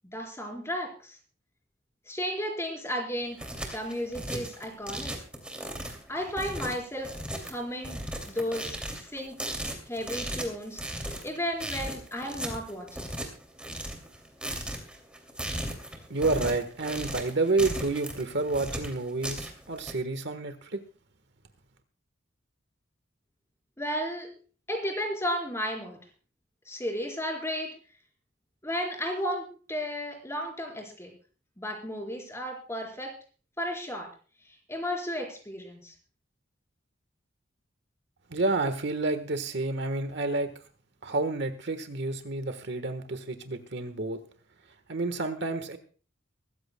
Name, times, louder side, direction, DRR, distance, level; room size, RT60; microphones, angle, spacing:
voice 1, 0.1-1.2 2.1-3.4 3.7-5.1 6.1-7.1 7.4-8.0 8.3-8.8 9.1-9.4 9.9-13.1 23.8-24.3 24.7-26.0 26.7-27.7 28.6-31.1 31.6-33.1 33.6-34.1 34.5-35.9, equal, 15° left, 1 dB, 4.4 m, -33 dB
sound 1, 3.1-19.9, right 1 dB, 5° right, 2.6 m, -37 dB
voice 2, 16.1-20.8 38.3-40.5 41.0-44.2 44.9-45.8, right 3 dB, 60° right, 9 dB, 1.4 m, -29 dB
24.0 x 14.0 x 2.3 m, 0.39 s
head